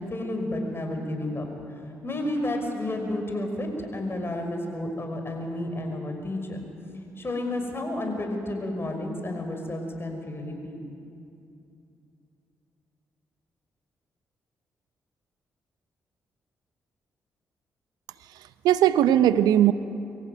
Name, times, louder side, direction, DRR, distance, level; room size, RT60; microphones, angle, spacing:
voice 1, 0.0-1.5 2.0-6.7 7.2-10.8, left 1 dB, 35° left, 4 dB, 5.7 m, -31 dB
voice 2, 18.3-19.7, right 11 dB, 75° right, 13 dB, 0.7 m, -20 dB
24.0 x 15.5 x 9.3 m, 2.6 s
hypercardioid pair, 45°, 7 cm